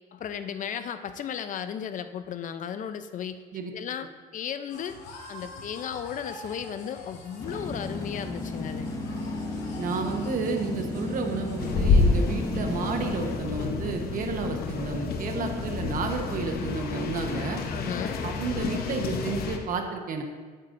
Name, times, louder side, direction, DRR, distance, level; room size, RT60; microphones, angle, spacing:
voice 1, 0.1-3.4 3.7-5.0 5.3-8.9 17.7-18.3, left 8 dB, 50° left, 10 dB, 0.6 m, -35 dB
sound 1, 4.7-11.8, left 3 dB, 85° left, 2.3 m, -46 dB
sound 2, 7.4-13.3, left 2 dB, 20° left, 1.3 m, -34 dB
voice 2, 9.8-17.6 18.2-20.2, right 4 dB, 55° right, 4 dB, 1.1 m, -31 dB
sound 3, 11.6-19.6, left 4 dB, 65° left, 1.0 m, -28 dB
10.5 x 9.1 x 2.6 m, 1.5 s
cardioid pair, 110°, 17 cm